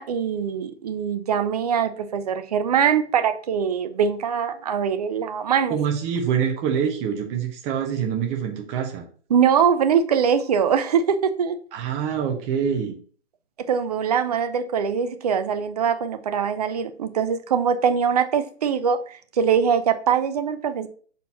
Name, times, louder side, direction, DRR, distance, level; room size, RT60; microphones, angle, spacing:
voice 1, 0.0-5.8 9.3-11.6 13.7-20.9, right 7 dB, 35° right, 0.6 m, -22 dB
voice 2, 5.7-9.0 11.7-12.9, right 7 dB, 20° right, 1.0 m, -25 dB
6.1 x 4.2 x 4.0 m
figure-of-eight pair, 130°, 34 cm